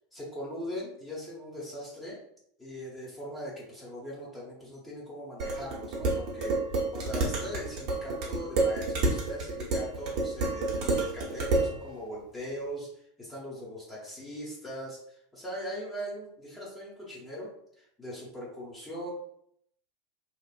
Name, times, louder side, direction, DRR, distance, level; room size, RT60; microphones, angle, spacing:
voice 1, 0.1-2.2 2.6-19.1, equal, 10° left, -6 dB, 0.9 m, -40 dB
Dishes pots and pans, 5.4-11.7, right 2 dB, 50° right, 0.9 m, -29 dB
3.0 x 2.4 x 2.4 m, 0.70 s
figure-of-eight pair, 80°, 0 cm